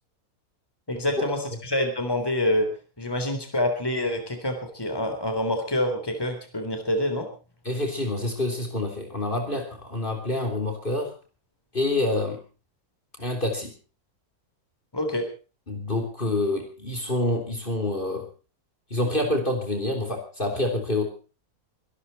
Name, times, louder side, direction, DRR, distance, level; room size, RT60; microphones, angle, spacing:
voice 1, 0.9-2.7 3.0-7.3 14.9-15.3, left 1 dB, 15° left, 6 dB, 3.5 m, -26 dB
voice 2, 7.7-11.1 11.7-12.4 13.2-13.7 15.7-18.3 18.9-21.2, left 2 dB, 35° left, 4 dB, 3.5 m, -27 dB
24.0 x 12.5 x 4.2 m, 0.35 s
omnidirectional pair, 1.6 m